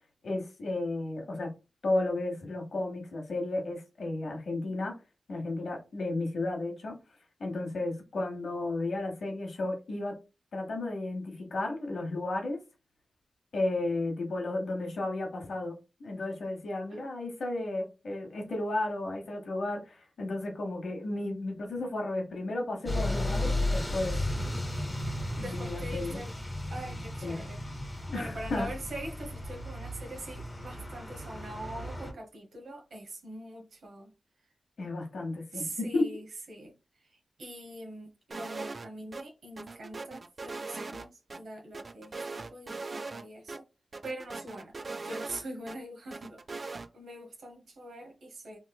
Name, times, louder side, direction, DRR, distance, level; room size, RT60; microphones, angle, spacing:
voice 1, 0.2-1.5 1.8-4.9 5.3-6.9 7.4-10.1 10.5-12.6 13.5-24.2 25.4-26.2 27.2-27.4 28.1-28.7 34.8-36.1, left 2 dB, 80° left, 0.9 m, -33 dB
sound 1, 22.9-32.1, left 1 dB, 25° left, 1.1 m, -34 dB
voice 2, 25.4-26.4 26.7-34.1 34.4-34.5 35.5-43.6 44.0-44.7 45.0-48.6, right 1 dB, 90° right, 0.9 m, -43 dB
sound 2, 38.3-38.9 39.1-39.2 39.6-41.4 41.7-43.2 43.5-43.6 43.9-45.8 46.1-46.9, right 3 dB, 55° right, 0.3 m, -40 dB
3.0 x 3.0 x 2.2 m
cardioid pair, 50°, 0 cm